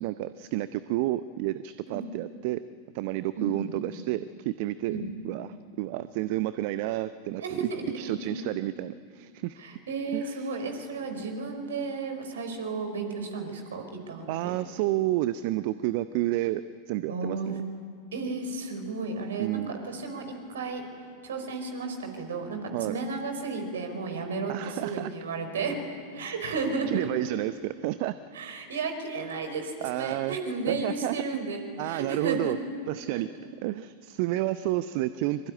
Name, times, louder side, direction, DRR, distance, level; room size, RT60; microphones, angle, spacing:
voice 1, 0.0-2.6 2.9-5.0 5.2-7.7 8.0-9.6 10.1-10.5 14.3-17.6 19.4-19.7 22.7-23.0 24.5-25.1 26.9-28.2 29.8-30.4 30.7-31.2 31.8-32.6 32.9-33.3 33.6-35.5, right 16 dB, 45° right, 14 dB, 0.7 m, -30 dB
voice 2, 3.3-3.7 4.9-5.1 7.4-8.4 9.6-14.5 17.1-17.6 18.1-20.8 21.2-25.8 26.1-27.2 28.3-32.5 33.1-33.2, right 4 dB, 65° right, 5 dB, 5.0 m, -33 dB
24.5 x 24.0 x 9.9 m, 2.4 s
figure-of-eight pair, 90°, 0 cm